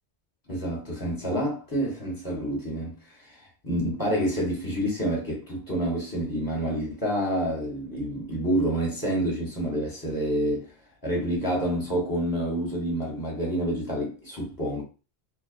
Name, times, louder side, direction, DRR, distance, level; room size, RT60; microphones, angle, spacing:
voice 1, 0.5-10.7 11.0-14.8, right 1 dB, 20° left, 0.9 m, -28 dB
2.4 x 2.2 x 2.4 m
omnidirectional pair, 1.1 m